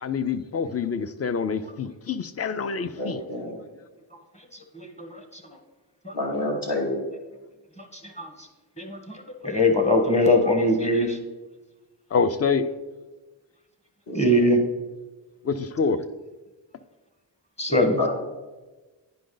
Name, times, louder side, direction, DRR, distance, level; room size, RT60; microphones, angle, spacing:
voice 1, 0.0-3.2 12.1-12.7 15.4-16.0, left 5 dB, 35° left, 0.5 m, -26 dB
voice 2, 3.0-3.6 6.1-6.9 14.1-14.5 18.0-18.1, left 1 dB, 50° left, 2.3 m, -28 dB
voice 3, 8.8-9.2 9.4-11.2 14.1-14.6 17.6-18.1, left 1 dB, 15° left, 1.4 m, -21 dB
10.5 x 5.0 x 3.9 m
cardioid pair, 90°, 45 cm